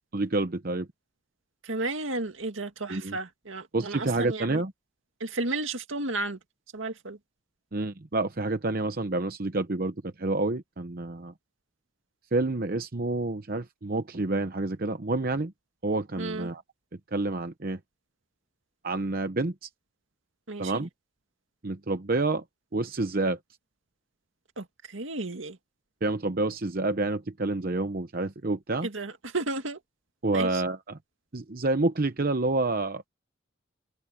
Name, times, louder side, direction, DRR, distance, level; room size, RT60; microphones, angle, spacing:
voice 1, 0.1-0.9 2.9-3.2 3.7-4.7 7.7-11.3 12.3-15.5 15.8-16.6 17.1-17.8 18.8-19.7 20.6-20.9 21.6-22.4 22.7-23.4 26.0-28.9 30.2-31.0 31.3-33.1, right 2 dB, 45° right, 0.8 m, -28 dB
voice 2, 1.6-4.6 5.2-6.4 6.7-7.2 16.2-16.5 20.5-20.8 24.6-25.6 28.8-29.8 30.3-30.6, right 2 dB, 75° right, 2.1 m, -33 dB
open air
head